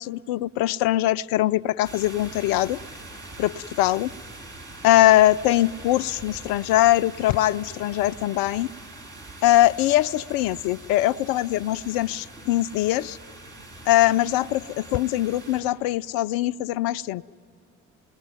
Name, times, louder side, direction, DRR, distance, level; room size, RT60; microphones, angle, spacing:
voice 1, 0.0-2.8 3.4-4.1 4.8-8.7 9.4-13.2 13.9-17.2, left 15 dB, 65° left, 16 dB, 0.5 m, -22 dB
sound 1, 1.8-15.6, right 2 dB, 55° right, 7.1 m, -43 dB
27.5 x 20.0 x 9.4 m, 2.7 s
hypercardioid pair, 50°, 37 cm